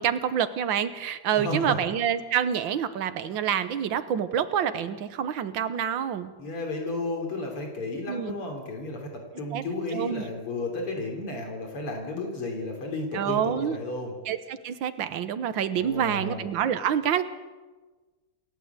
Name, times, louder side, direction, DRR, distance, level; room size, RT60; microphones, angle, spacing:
voice 1, 0.0-6.3 8.1-8.4 9.5-9.6 9.9-10.2 13.1-13.8 14.3-17.2, right 9 dB, 65° right, 11 dB, 1.8 m, -27 dB
voice 2, 1.3-1.8 6.4-14.1 15.7-16.4, left 2 dB, 80° left, 2 dB, 4.3 m, -33 dB
28.5 x 12.5 x 8.2 m, 1.3 s
omnidirectional pair, 2.4 m